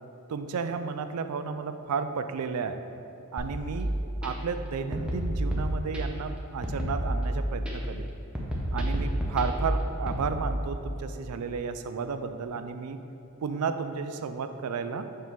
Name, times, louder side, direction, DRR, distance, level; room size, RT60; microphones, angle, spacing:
voice 1, 0.3-2.8 3.3-3.9 4.2-8.1 8.7-13.0 13.4-15.1, right 5 dB, 85° right, 9 dB, 0.4 m, -32 dB
sound 1, 3.4-4.3 4.9-6.3 6.6-7.7 8.4-10.2, right 1 dB, 5° right, 0.7 m, -30 dB
6.7 x 5.5 x 3.1 m, 2.7 s
head